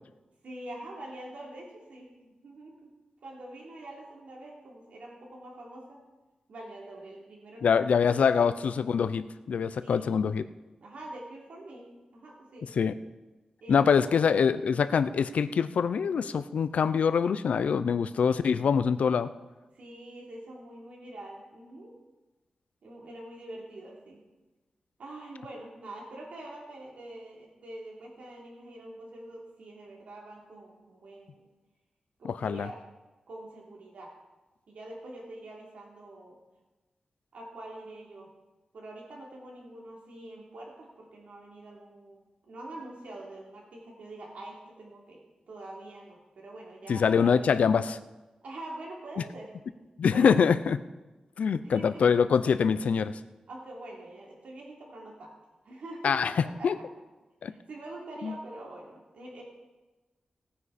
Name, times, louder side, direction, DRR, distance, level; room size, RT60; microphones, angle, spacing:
voice 1, 0.4-2.9 3.2-6.0 6.5-8.6 9.8-10.1 10.8-12.7 13.6-14.5 19.7-21.9 22.8-24.2 25.0-31.5 32.2-32.8 33.3-34.1 34.7-36.4 37.3-38.3 38.7-45.2 45.5-47.6 48.4-49.5 50.1-50.3 51.6-52.0 53.5-55.3 55.6-56.8 57.4-59.4, right 1 dB, 90° right, -2 dB, 3.2 m, -45 dB
voice 2, 7.6-10.4 12.8-12.9 13.7-19.3 32.3-32.7 46.9-48.0 50.0-50.8 51.4-53.2 56.0-56.3 56.6-56.7 57.4-57.5 58.2-58.3, left 6 dB, 85° left, 13 dB, 0.6 m, -24 dB
18.0 x 9.6 x 4.3 m, 1.1 s
wide cardioid pair, 145°, 2 cm